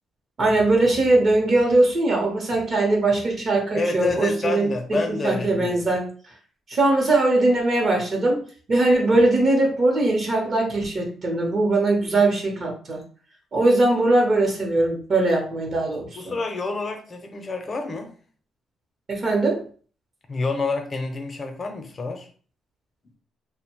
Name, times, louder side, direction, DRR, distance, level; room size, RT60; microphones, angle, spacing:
voice 1, 0.4-4.7 5.2-6.1 6.7-13.0 13.5-16.3 19.1-19.7, right 2 dB, 45° right, 0 dB, 0.8 m, -21 dB
voice 2, 3.7-5.9 16.1-18.1 20.3-22.3, left 3 dB, 35° left, 5 dB, 0.6 m, -28 dB
2.8 x 2.1 x 2.9 m, 0.41 s
cardioid pair, 90°, 0 cm